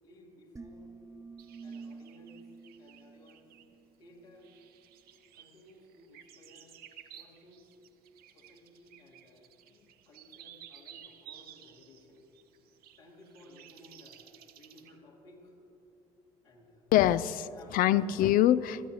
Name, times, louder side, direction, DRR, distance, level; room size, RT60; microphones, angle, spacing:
voice 1, 0.0-0.9 1.6-2.4 2.8-3.5 4.0-4.5 5.3-6.8 7.1-7.7 8.3-12.3 13.0-15.5 16.4-16.9 17.5-18.0, left 1 dB, 70° left, -4 dB, 2.6 m, -57 dB
sound 1, 0.6-3.9, right 4 dB, 15° right, 1.0 m, -49 dB
sound 2, 1.4-3.7 4.4-15.0, right 10 dB, 55° right, 0.9 m, -55 dB
voice 2, 16.9-18.9, left 12 dB, 50° left, 17 dB, 0.4 m, -25 dB
23.5 x 13.5 x 3.1 m, 2.6 s
figure-of-eight pair, 55°, 19 cm